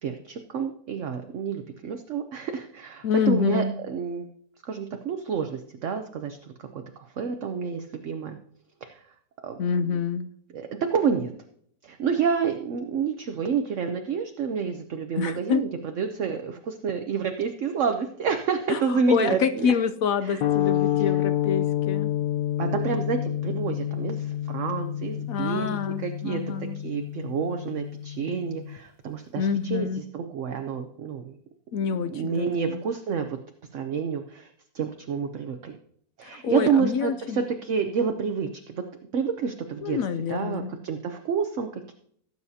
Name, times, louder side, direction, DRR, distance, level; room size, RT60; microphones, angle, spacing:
voice 1, 0.0-4.3 4.6-8.4 8.8-9.0 9.4-9.5 10.5-11.3 11.8-19.7 20.2-20.5 21.0-21.1 22.6-31.3 32.0-33.4 33.7-34.5 34.7-35.8 36.2-38.8 39.1-40.0 40.3-41.9, right 6 dB, 55° right, 6 dB, 0.9 m, -29 dB
voice 2, 3.0-3.7 9.6-10.3 15.2-15.6 18.7-22.1 25.3-26.8 29.4-30.0 31.7-32.8 36.2-37.4 39.8-40.7, left 6 dB, 70° left, 11 dB, 0.8 m, -27 dB
sound 1, 20.4-28.8, left 12 dB, 85° left, 1.4 m, -28 dB
17.5 x 8.1 x 2.8 m, 0.65 s
omnidirectional pair, 1.9 m